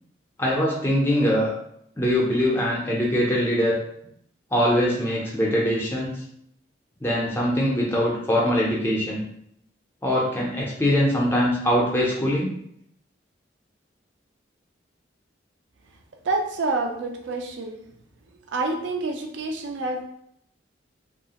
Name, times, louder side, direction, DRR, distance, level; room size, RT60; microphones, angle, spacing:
voice 1, 0.4-1.5 2.0-3.8 4.5-6.1 7.0-9.2 10.0-12.5, equal, 10° left, -4 dB, 0.4 m, -22 dB
voice 2, 16.3-17.8 18.5-20.0, right 3 dB, 75° right, 3 dB, 0.4 m, -27 dB
2.7 x 2.4 x 2.8 m, 0.72 s
head